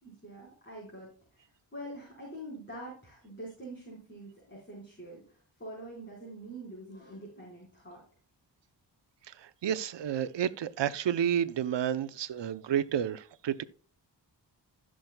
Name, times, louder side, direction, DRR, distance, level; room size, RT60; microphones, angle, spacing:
voice 1, 0.0-8.0, right 1 dB, 25° left, 4.8 m, -45 dB
voice 2, 9.4-13.6, right 9 dB, 75° right, 0.8 m, -30 dB
16.0 x 6.3 x 2.3 m
cardioid pair, 60°, 44 cm